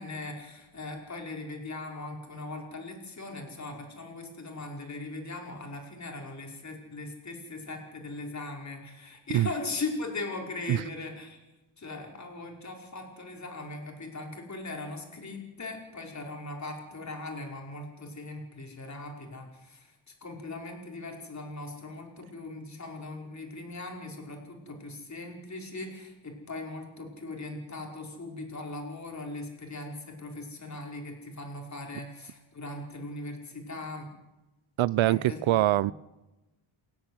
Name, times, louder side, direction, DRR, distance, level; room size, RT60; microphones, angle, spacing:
voice 1, 0.0-11.4 11.8-34.1 35.0-35.4 35.8-35.9, left 2 dB, 35° left, 5.2 m, -39 dB
voice 2, 34.8-35.9, right 15 dB, 75° right, 0.6 m, -23 dB
28.5 x 10.5 x 9.8 m
wide cardioid pair, 135°, 48 cm